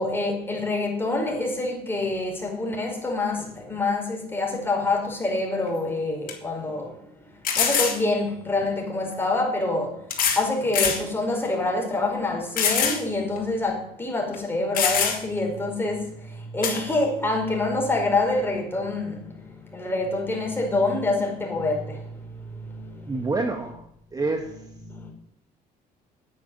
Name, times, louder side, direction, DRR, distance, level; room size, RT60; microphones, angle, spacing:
voice 1, 0.0-23.3 24.8-25.1, left 2 dB, 15° left, 5.1 m, -27 dB
sound 1, 5.7-5.8 6.3-6.4 7.4-8.0 9.1-9.2 10.1-10.5 10.7-11.0 11.5-11.6 12.6-13.0 13.4-13.5 14.3-14.4 14.7-15.4 16.6-16.8, left 6 dB, 55° left, 3.6 m, -23 dB
voice 2, 23.1-23.8 24.1-24.5, right 3 dB, 20° right, 1.5 m, -27 dB
9.8 x 9.7 x 9.7 m
cardioid pair, 110°, 17 cm